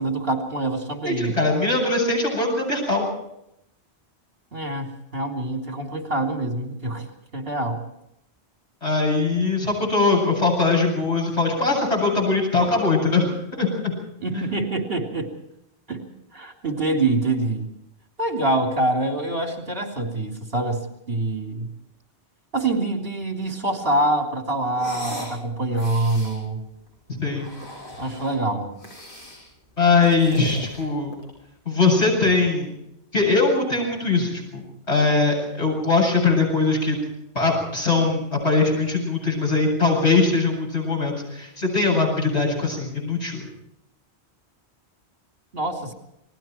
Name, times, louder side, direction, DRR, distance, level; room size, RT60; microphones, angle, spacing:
voice 1, 0.0-1.4 4.5-7.1 7.3-7.8 14.2-15.3 15.9-16.0 16.3-17.7 18.2-21.7 22.5-26.6 28.0-28.7 45.5-45.9, right 2 dB, 60° right, 2 dB, 3.6 m, -25 dB
voice 2, 1.0-3.0 8.8-13.9 27.2-27.5 29.8-31.1 31.6-32.7 33.1-37.0 37.3-43.4, left 3 dB, 80° left, -1 dB, 8.4 m, -21 dB
sound 1, 24.7-25.4 25.7-26.4 27.2-28.4 28.8-29.5 29.9-31.4, equal, 50° left, 7.1 m, -38 dB
28.5 x 21.0 x 4.6 m, 0.81 s
omnidirectional pair, 1.1 m